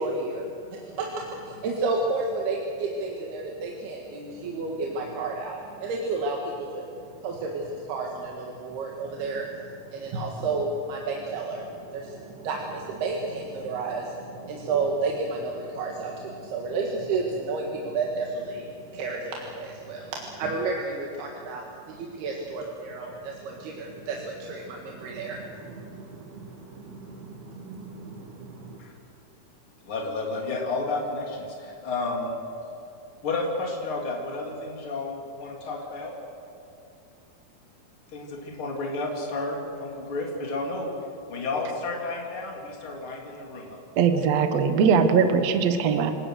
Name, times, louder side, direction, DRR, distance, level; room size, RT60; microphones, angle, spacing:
voice 1, 0.0-28.8, right 3 dB, 80° right, 0 dB, 3.7 m, -32 dB
voice 2, 29.8-32.3 33.2-36.1 38.1-40.9 41.3-43.8, left 3 dB, 35° left, -1 dB, 3.9 m, -31 dB
voice 3, 44.0-46.1, right 6 dB, 60° right, 7 dB, 1.9 m, -21 dB
28.5 x 18.0 x 6.5 m, 2.7 s
omnidirectional pair, 4.5 m